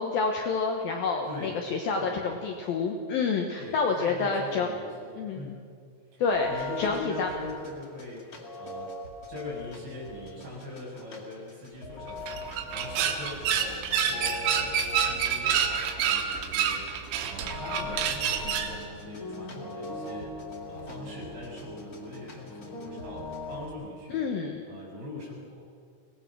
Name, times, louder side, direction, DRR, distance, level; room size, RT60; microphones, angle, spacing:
voice 1, 0.0-4.7 5.2-5.6 6.2-7.3 24.1-24.6, left 4 dB, 70° left, 2 dB, 2.4 m, -28 dB
voice 2, 1.3-1.6 2.0-2.2 3.6-5.7 6.1-8.9 9.3-16.9 17.3-20.4 20.7-24.3 24.7-25.6, left 1 dB, 50° right, -5 dB, 8.7 m, -42 dB
sound 1, 6.3-23.7, left 2 dB, 85° left, 0.8 m, -40 dB
sound 2, 12.1-18.8, right 8 dB, 85° right, 3.9 m, -28 dB
23.5 x 19.0 x 6.3 m, 2.2 s
omnidirectional pair, 5.6 m